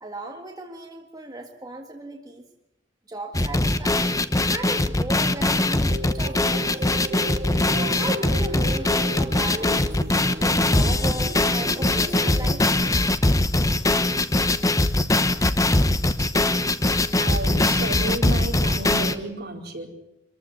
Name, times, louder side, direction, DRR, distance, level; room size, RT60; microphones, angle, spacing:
voice 1, 0.0-2.4 3.1-6.9 7.7-9.9 10.4-12.7, right 2 dB, 20° right, 1 dB, 1.8 m, -36 dB
sound 1, 3.3-19.2, left 2 dB, 20° left, 1.0 m, -21 dB
sound 2, 5.9-12.7, right 1 dB, 35° right, 2.6 m, -35 dB
voice 2, 17.2-19.9, right 2 dB, 60° right, 0 dB, 4.5 m, -32 dB
24.5 x 15.0 x 9.7 m, 0.88 s
head